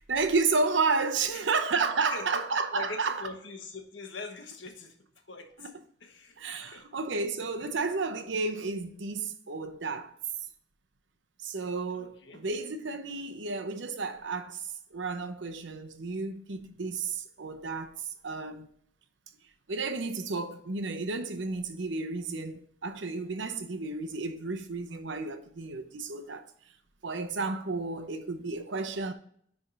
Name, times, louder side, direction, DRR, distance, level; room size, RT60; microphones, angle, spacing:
voice 1, 0.0-3.3 5.6-5.7 6.4-10.2 11.4-18.7 19.7-26.5 27.0-29.1, right 4 dB, 80° right, 0.8 m, -32 dB
voice 2, 2.7-4.9 5.3-5.7 6.0-6.8 11.9-12.4, left 4 dB, 85° left, 1.2 m, -42 dB
10.0 x 3.6 x 3.9 m
head